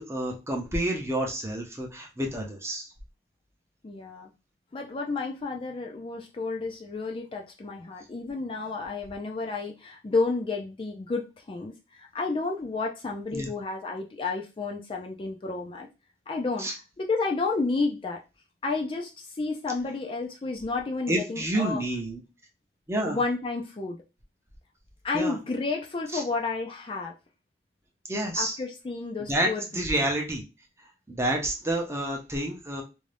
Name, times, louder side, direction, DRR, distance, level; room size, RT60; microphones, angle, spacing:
voice 1, 0.0-2.9 13.3-13.5 16.6-16.7 21.1-22.2 22.9-23.2 25.1-25.4 26.1-26.2 28.1-28.6 29.3-30.4 31.1-32.8, right 1 dB, 15° right, 1 dB, 0.6 m, -29 dB
voice 2, 3.8-4.3 4.7-15.9 16.3-16.7 17.0-18.2 18.6-21.8 23.0-24.0 25.0-27.1 28.4-30.1, left 3 dB, 30° left, 1 dB, 0.4 m, -31 dB
2.6 x 2.2 x 3.3 m, 0.28 s
head